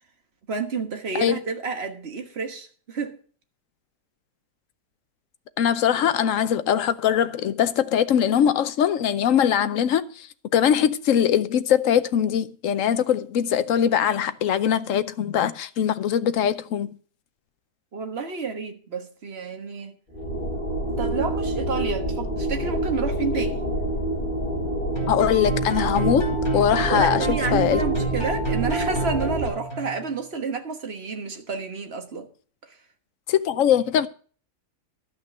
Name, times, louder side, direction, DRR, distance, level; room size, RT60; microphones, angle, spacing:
voice 1, 0.5-3.2 17.9-19.9 21.0-23.6 26.9-32.3 32.6-32.8, right 4 dB, 40° right, 1.6 m, -30 dB
voice 2, 5.6-10.3 10.5-16.9 25.1-27.3 27.5-27.8 33.3-34.1, left 9 dB, 60° left, 0.9 m, -22 dB
sound 1, 20.1-29.5, right 1 dB, 30° left, 3.1 m, -27 dB
sound 2, 25.0-30.1, right 3 dB, 15° left, 2.5 m, -30 dB
12.0 x 6.0 x 7.3 m
omnidirectional pair, 1.8 m